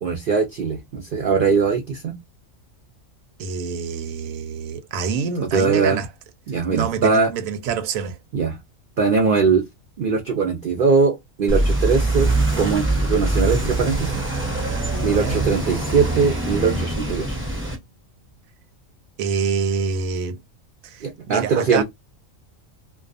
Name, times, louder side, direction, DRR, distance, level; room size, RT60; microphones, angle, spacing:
voice 1, 0.0-2.1 5.4-6.0 6.5-7.3 8.3-8.6 9.0-9.6 10.0-12.3 12.6-14.2 15.0-17.4 21.0-21.8, right 5 dB, 60° right, 0.5 m, -21 dB
voice 2, 3.4-6.1 6.7-8.2 15.0-15.4 19.2-20.4 20.8-21.8, right 6 dB, 80° right, 1.0 m, -26 dB
sound 1, 11.5-17.8, right 2 dB, 10° right, 0.6 m, -23 dB
sound 2, 14.9-18.1, left 4 dB, 50° left, 0.6 m, -43 dB
2.4 x 2.3 x 2.4 m
omnidirectional pair, 1.4 m